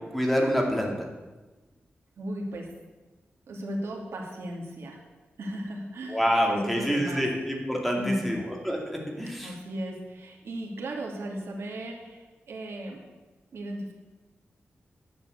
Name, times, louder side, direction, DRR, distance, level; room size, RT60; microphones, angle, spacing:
voice 1, 0.1-1.1 6.1-9.5, equal, ahead, -1 dB, 2.5 m, -27 dB
voice 2, 2.2-2.7 3.5-5.0 5.4-7.2 7.9-8.4 9.4-13.0 13.5-13.9, right 1 dB, 85° right, 1 dB, 2.3 m, -35 dB
10.5 x 7.9 x 8.0 m, 1.2 s
wide cardioid pair, 115°, 4 cm